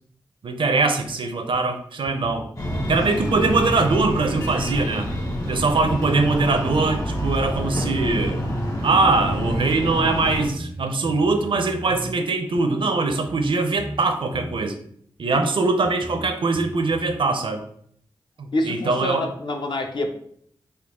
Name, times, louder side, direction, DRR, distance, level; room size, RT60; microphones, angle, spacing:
voice 1, 0.4-2.5 2.9-5.1 5.5-8.4 8.8-14.8 15.2-17.6 18.4-19.2, right 3 dB, 65° right, 6 dB, 0.5 m, -22 dB
sound 1, 1.1-1.2 1.5-1.6 2.1-3.0 3.3-3.6 4.3-4.4 4.8-6.6 7.1-7.2 7.8-8.0 8.3-9.1 9.8-9.9 10.4-12.2 12.6-12.7 13.1-14.0 14.3-14.6 15.3-15.4 15.9-17.2, right 1 dB, 15° right, 0.4 m, -37 dB
Breathing, 2.6-10.4, equal, 40° left, 1.1 m, -27 dB
voice 2, 18.5-20.1, left 1 dB, 55° left, 4 dB, 0.6 m, -26 dB
3.8 x 2.3 x 3.5 m, 0.64 s
cardioid pair, 50°, 9 cm